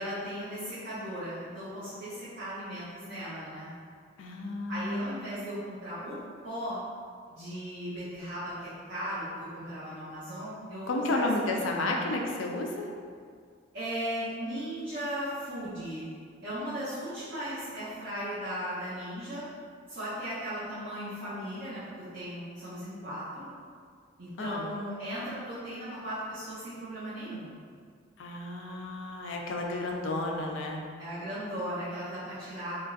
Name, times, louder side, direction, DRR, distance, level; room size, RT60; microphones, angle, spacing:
voice 1, 0.0-3.7 4.7-6.2 6.4-6.8 7.3-12.1 13.7-16.1 16.4-19.4 19.9-23.5 24.2-27.5 31.0-32.8, equal, 55° right, -13 dB, 0.7 m, -37 dB
voice 2, 4.2-5.3 10.9-12.9 24.4-24.7 28.2-30.8, left 2 dB, 70° left, 1 dB, 0.4 m, -32 dB
3.0 x 2.5 x 2.4 m, 2.1 s
head